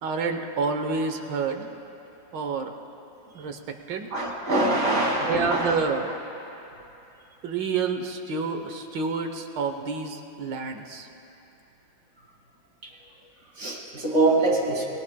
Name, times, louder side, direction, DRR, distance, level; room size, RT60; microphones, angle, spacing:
voice 1, 0.0-1.7 2.3-2.7 3.3-4.1 5.3-6.1 7.4-11.1, right 4 dB, 75° right, 5 dB, 1.7 m, -28 dB
voice 2, 4.1-5.8 6.4-6.5 12.8-12.9 13.6-14.9, right 2 dB, 50° right, -2 dB, 2.8 m, -24 dB
28.5 x 20.0 x 2.3 m, 2.9 s
omnidirectional pair, 2.0 m